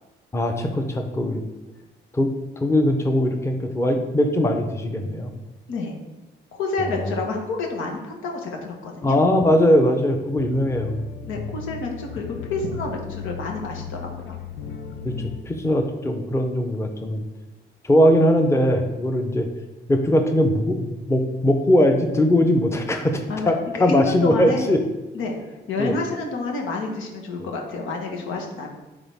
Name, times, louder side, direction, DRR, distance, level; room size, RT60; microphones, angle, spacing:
voice 1, 0.3-1.4 2.1-2.3 2.6-5.3 6.9-7.1 9.0-11.0 15.0-17.2 17.8-19.5 19.9-24.8 25.8-25.9, left 1 dB, 15° left, 4 dB, 0.8 m, -20 dB
voice 2, 6.5-9.2 11.2-14.4 23.3-24.7 25.1-25.3 25.7-28.7, left 3 dB, 85° left, 1 dB, 1.4 m, -29 dB
sound 1, 10.4-15.4, left 7 dB, 65° left, 0.7 m, -36 dB
9.9 x 4.0 x 3.6 m, 1.1 s
cardioid pair, 90°, 20 cm